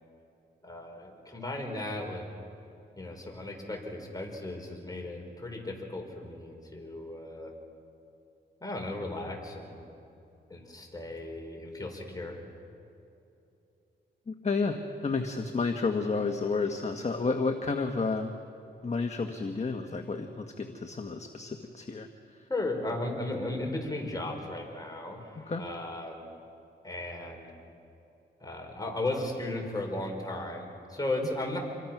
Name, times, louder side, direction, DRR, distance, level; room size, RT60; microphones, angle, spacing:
voice 1, 0.6-2.3 3.0-7.5 8.6-9.8 10.5-12.4 22.5-26.3 26.8-27.5 28.4-31.6, left 2 dB, 20° left, 1 dB, 5.3 m, -36 dB
voice 2, 14.3-18.3 18.8-22.5 25.5-25.6, left 4 dB, 35° left, 5 dB, 1.5 m, -31 dB
27.5 x 23.0 x 6.1 m, 2.8 s
cardioid pair, 70°, 20 cm